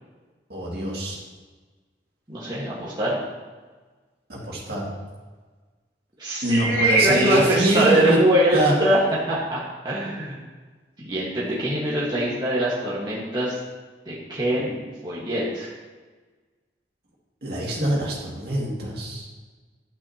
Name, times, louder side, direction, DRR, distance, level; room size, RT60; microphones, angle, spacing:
voice 1, 0.5-1.2 4.3-4.8 6.4-8.2 8.5-8.7 17.4-19.3, right 1 dB, 60° right, -4 dB, 2.3 m, -24 dB
voice 2, 2.3-3.2 6.2-9.0 9.3-10.4 11.0-13.6 14.0-14.7 15.0-15.7, right 1 dB, 25° right, -7 dB, 1.5 m, -23 dB
11.0 x 8.7 x 2.9 m, 1.3 s
head